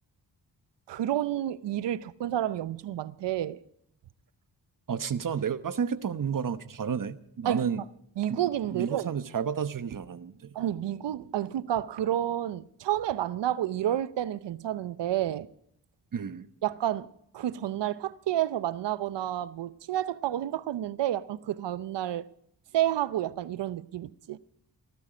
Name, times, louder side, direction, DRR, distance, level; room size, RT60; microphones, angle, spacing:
voice 1, 0.9-3.6 7.4-7.7 8.2-9.2 10.5-15.5 16.6-22.3 22.7-24.4, right 12 dB, 75° right, 0.7 m, -30 dB
voice 2, 4.9-7.8 8.3-8.4 8.7-10.5 16.1-16.5, right 7 dB, 50° right, 1.1 m, -31 dB
19.0 x 14.0 x 5.1 m
cardioid pair, 50°, 42 cm